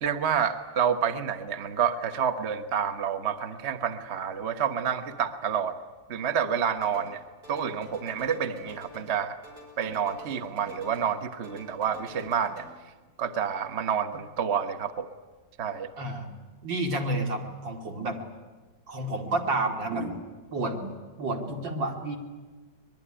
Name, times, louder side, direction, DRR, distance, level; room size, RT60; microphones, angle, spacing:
voice 1, 0.0-5.7 6.1-7.2 7.5-9.4 9.8-12.7 13.2-15.1 15.6-15.9, right 8 dB, 40° right, 9 dB, 1.3 m, -28 dB
sound 1, 6.8-7.2 7.4-9.2 9.4-11.2 11.4-12.7, left 1 dB, 60° right, 5.8 m, -48 dB
voice 2, 16.0-16.3 16.6-18.2 18.9-20.2 20.5-20.9 21.2-22.2, right 2 dB, 80° right, 4 dB, 3.2 m, -30 dB
23.5 x 21.0 x 10.0 m, 1.3 s
omnidirectional pair, 2.0 m